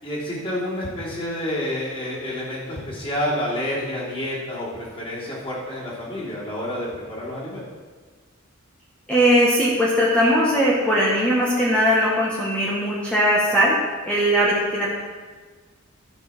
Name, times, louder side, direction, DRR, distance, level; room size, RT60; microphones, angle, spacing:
voice 1, 0.0-7.6, left 1 dB, 25° left, -7 dB, 3.2 m, -29 dB
voice 2, 9.1-13.8 14.1-14.9, equal, 5° left, -6 dB, 1.4 m, -19 dB
12.0 x 5.6 x 5.9 m, 1.5 s
head